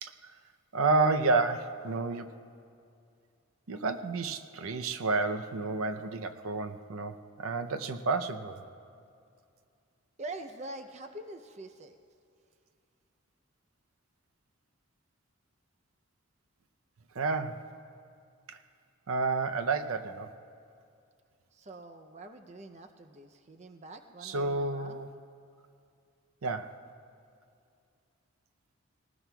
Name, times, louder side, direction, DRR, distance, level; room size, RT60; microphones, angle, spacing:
voice 1, 0.0-0.3 0.7-2.4 3.7-8.6 17.1-17.6 18.5-18.6 19.1-20.3 24.2-25.1 26.4-26.8, right 3 dB, 85° right, 9 dB, 0.6 m, -30 dB
voice 2, 10.2-12.0 21.5-25.0, right 2 dB, 30° right, 6 dB, 0.5 m, -45 dB
19.5 x 19.0 x 2.3 m, 2.4 s
head